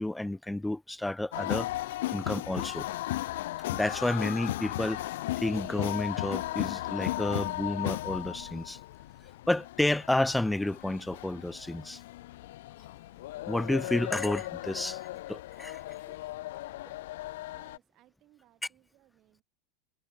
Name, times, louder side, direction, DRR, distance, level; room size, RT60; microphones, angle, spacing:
voice 1, 0.0-2.9 3.6-8.8 9.5-12.0 13.5-15.0 15.3-15.8, left 1 dB, 5° left, 0.6 m, -31 dB
sound 1, 1.3-17.8, left 16 dB, 70° left, 1.4 m, -36 dB
voice 2, 17.4-19.4, right 15 dB, 30° right, 6.4 m, -64 dB
supercardioid pair, 175°, 0 cm